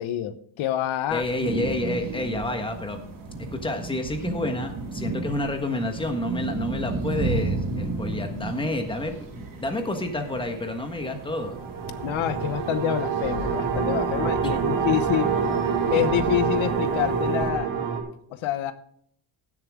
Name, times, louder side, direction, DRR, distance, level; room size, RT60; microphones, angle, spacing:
voice 1, 0.0-1.2 12.0-15.3 15.9-17.7 18.3-18.7, left 11 dB, 80° left, 12 dB, 1.0 m, -26 dB
voice 2, 1.1-3.0 3.4-11.6, left 1 dB, 10° left, 5 dB, 1.4 m, -29 dB
sound 1, 1.1-17.5, right 3 dB, 45° right, 2.2 m, -34 dB
sound 2, 11.1-18.0, right 6 dB, 80° right, 2.4 m, -26 dB
16.0 x 7.5 x 3.6 m, 0.65 s
cardioid pair, 155°, 47 cm